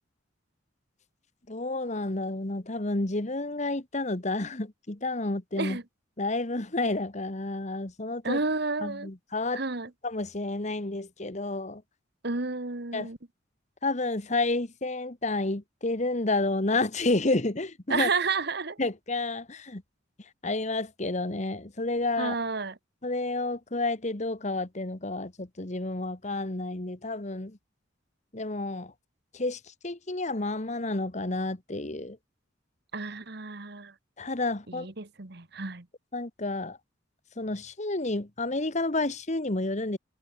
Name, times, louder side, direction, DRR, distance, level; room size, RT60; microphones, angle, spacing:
voice 1, 1.5-5.8 6.2-8.4 8.8-9.6 10.0-11.8 12.9-13.1 13.8-18.1 18.8-19.8 20.4-22.4 23.0-27.6 28.3-28.9 29.3-32.2 34.2-34.9 36.1-36.8 37.4-40.0, left 2 dB, 35° left, 1.5 m, -30 dB
voice 2, 8.2-9.1 9.5-9.9 12.2-13.2 17.9-18.8 22.2-22.8 32.9-33.9 34.7-35.9, right 4 dB, 55° right, 1.5 m, -31 dB
head